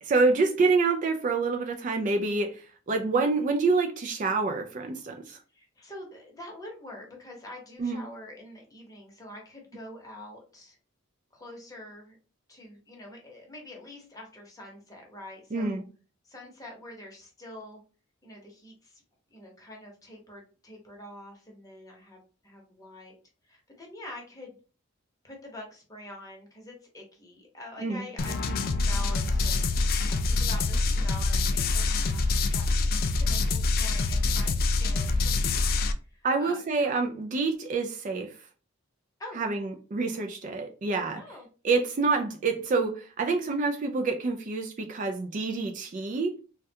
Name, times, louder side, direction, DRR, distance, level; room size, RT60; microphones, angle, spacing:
voice 1, 0.0-5.4 7.8-8.0 15.5-15.8 27.8-28.0 36.2-38.3 39.4-41.2 41.6-46.4, right 3 dB, 40° right, 0.3 m, -27 dB
voice 2, 5.5-10.8 11.3-12.2 12.5-15.8 16.2-17.8 18.2-19.0 19.3-23.2 23.4-24.6 25.2-37.2 39.2-39.4 41.1-41.5, left 1 dB, 15° left, 0.8 m, -46 dB
sound 1, 28.2-35.9, left 3 dB, 45° left, 0.3 m, -25 dB
3.4 x 2.2 x 2.7 m
head